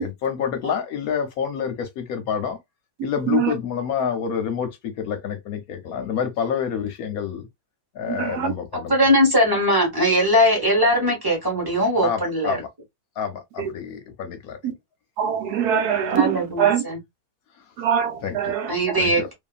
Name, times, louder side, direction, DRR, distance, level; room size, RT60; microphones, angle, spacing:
voice 1, 0.0-2.6 3.0-7.5 7.9-8.9 12.0-12.7 13.2-14.6 17.6-17.7 18.2-18.4 19.0-19.3, left 7 dB, 70° left, 1.0 m, -28 dB
voice 2, 3.2-3.5 8.1-8.5 13.6-13.7 14.6-14.7 15.2-16.8 17.8-19.0, right 8 dB, 75° right, 1.0 m, -23 dB
voice 3, 8.9-12.6 16.1-17.0 18.7-19.3, equal, 15° right, 0.9 m, -20 dB
2.7 x 2.5 x 2.3 m
omnidirectional pair, 1.8 m